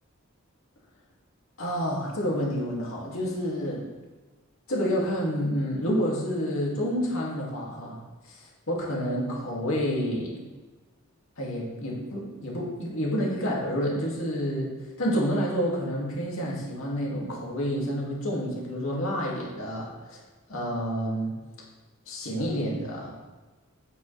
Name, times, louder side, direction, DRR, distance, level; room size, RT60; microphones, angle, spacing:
voice 1, 1.6-3.9 4.7-8.0 8.2-10.4 11.4-20.2 20.5-21.4 22.1-23.2, equal, 70° left, -4 dB, 2.4 m, -29 dB
9.0 x 8.1 x 3.4 m, 1.3 s
head